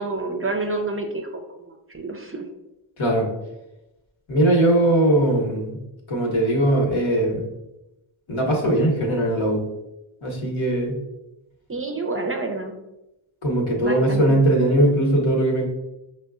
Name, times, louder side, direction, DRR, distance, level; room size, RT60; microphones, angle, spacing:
voice 1, 0.0-1.3 1.6-2.4 11.7-12.7 13.8-14.4, right 3 dB, 30° right, 3 dB, 0.5 m, -28 dB
voice 2, 3.0-3.3 4.3-5.8 6.1-7.4 8.3-9.6 10.2-11.0 13.4-15.6, right 1 dB, 70° left, 0 dB, 1.1 m, -20 dB
5.1 x 2.2 x 2.4 m, 0.94 s
cardioid pair, 40°, 50 cm